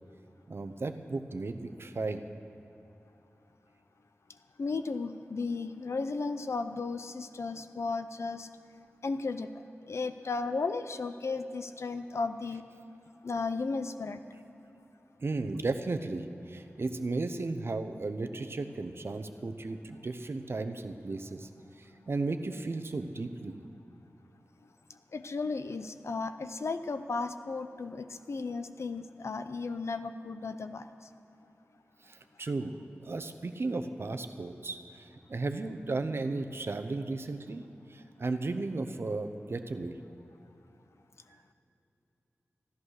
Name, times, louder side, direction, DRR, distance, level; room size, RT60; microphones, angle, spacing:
voice 1, 0.5-2.2 15.2-21.5 21.8-23.6 32.0-32.8 33.0-37.6 37.9-39.9, right 3 dB, 55° right, 8 dB, 0.8 m, -35 dB
voice 2, 4.6-8.5 9.0-9.5 9.9-12.6 13.2-14.2 25.1-30.9, left 4 dB, 70° left, 10 dB, 0.6 m, -34 dB
14.5 x 11.5 x 6.5 m, 3.0 s
wide cardioid pair, 75°, 5 cm